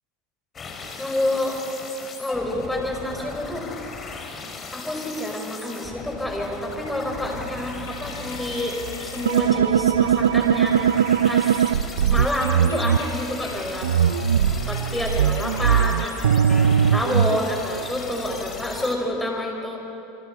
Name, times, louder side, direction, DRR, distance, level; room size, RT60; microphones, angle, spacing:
sound 1, 0.5-18.9, left 4 dB, 30° left, 3.5 m, -38 dB
voice 1, 1.0-1.6 2.2-3.7 4.7-10.8 11.2-11.7 12.1-13.9 14.7-19.9, left 1 dB, 5° left, 0 dB, 5.7 m, -28 dB
sound 2, 7.0-18.9, left 3 dB, 90° left, 3.9 m, -40 dB
sound 3, 9.3-13.0 13.8-17.4, right 8 dB, 85° right, 0.5 m, -20 dB
27.5 x 25.0 x 4.8 m, 2.8 s
hypercardioid pair, 90°, 0 cm